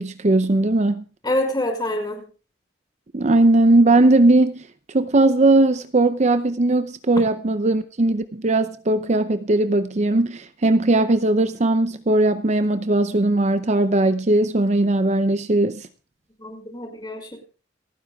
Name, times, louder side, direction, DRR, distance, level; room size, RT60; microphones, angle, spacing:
voice 1, 0.0-1.0 3.1-4.6 4.9-15.9, right 2 dB, 40° right, 0.6 m, -18 dB
voice 2, 1.2-2.2 16.4-17.4, left 1 dB, 25° left, 5.4 m, -26 dB
29.0 x 9.8 x 2.4 m
head